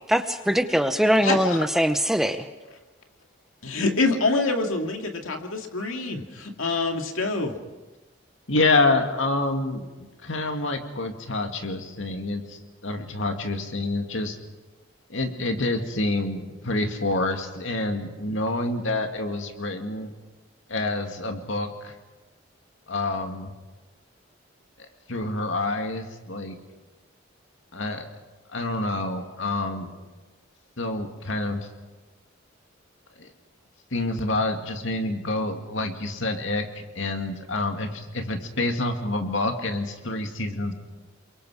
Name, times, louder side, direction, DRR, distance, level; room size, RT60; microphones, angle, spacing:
voice 1, 0.1-2.4, equal, ahead, 9 dB, 0.7 m, -22 dB
voice 2, 1.2-1.7 3.6-7.6, left 3 dB, 90° left, 3 dB, 2.2 m, -26 dB
voice 3, 8.5-14.4 15.1-20.1 20.7-21.9 22.9-23.5 25.1-26.6 27.7-28.1 28.5-29.9 30.8-31.7 33.2-33.3 33.9-40.7, left 2 dB, 70° left, 5 dB, 2.2 m, -27 dB
28.5 x 23.0 x 4.9 m, 1.2 s
head